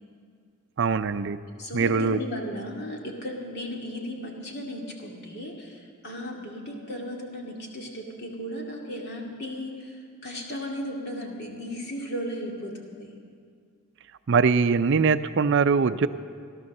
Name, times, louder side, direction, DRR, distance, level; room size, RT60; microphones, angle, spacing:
voice 1, 0.8-1.4 1.7-2.2 14.3-16.1, right 5 dB, 55° right, 11 dB, 0.5 m, -22 dB
voice 2, 1.6-13.2, equal, 50° left, 0 dB, 2.4 m, -36 dB
17.0 x 11.5 x 6.6 m, 2.2 s
head